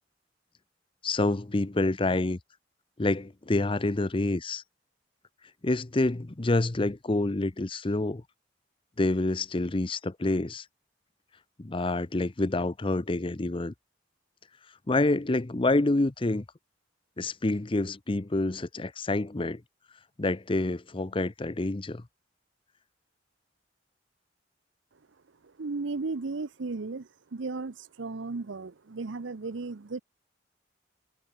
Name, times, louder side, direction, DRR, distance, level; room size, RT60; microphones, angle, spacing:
voice 1, 1.0-2.4 3.0-4.6 5.6-8.2 9.0-10.6 11.6-13.7 14.9-16.4 17.2-19.6 20.2-22.1, left 2 dB, 30° left, 0.7 m, -27 dB
voice 2, 25.4-30.0, right 3 dB, 85° right, 0.7 m, -35 dB
head